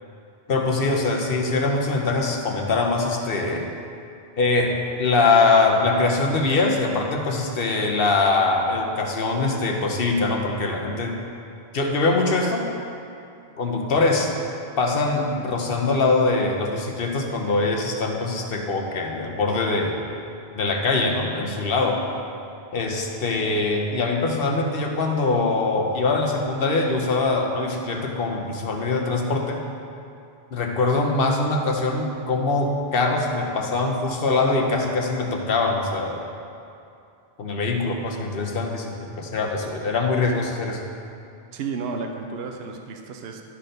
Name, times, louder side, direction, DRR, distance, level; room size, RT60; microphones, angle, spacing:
voice 1, 0.5-3.6 4.4-11.1 11.7-12.7 13.6-14.3 14.8-20.0 20.6-22.0 22.7-29.6 30.5-36.2 37.4-40.8, left 3 dB, 65° left, 1 dB, 1.1 m, -23 dB
voice 2, 41.5-43.4, right 4 dB, 75° right, 3 dB, 0.9 m, -32 dB
12.0 x 4.3 x 5.1 m, 2.6 s
omnidirectional pair, 1.1 m